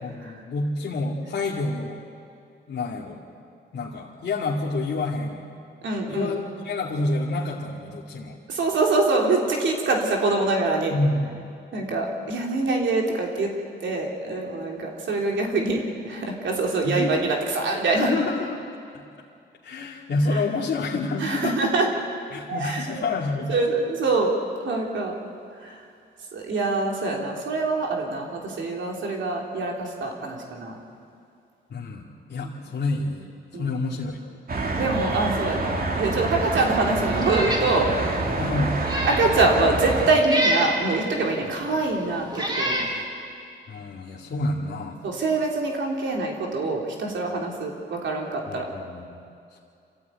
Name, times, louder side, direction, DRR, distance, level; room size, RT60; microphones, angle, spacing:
voice 1, 0.0-2.0 2.7-3.2 3.7-5.4 6.1-8.4 10.9-11.5 16.8-17.2 17.9-18.6 18.9-19.0 19.6-21.6 22.3-23.7 31.7-33.3 33.5-34.2 38.4-38.7 43.7-45.0 48.5-49.2, left 2 dB, 65° left, -4 dB, 2.3 m, -28 dB
voice 2, 5.8-6.4 8.5-10.9 11.7-13.5 13.8-18.1 21.2-21.9 22.5-23.0 23.5-24.4 24.6-25.1 25.6-25.7 26.3-30.8 33.5-33.7 34.8-37.9 39.0-42.9 45.0-48.7, right 3 dB, 75° right, 0 dB, 3.5 m, -24 dB
sound 1, 34.5-40.1, right 2 dB, 50° right, 2.8 m, -27 dB
Meow, 37.2-37.7 38.1-38.2 38.7-39.3 40.2-40.8 41.6-41.7 42.3-42.9, right 1 dB, 20° right, 4.4 m, -26 dB
27.0 x 15.0 x 9.5 m, 2.4 s
cardioid pair, 100°, 19 cm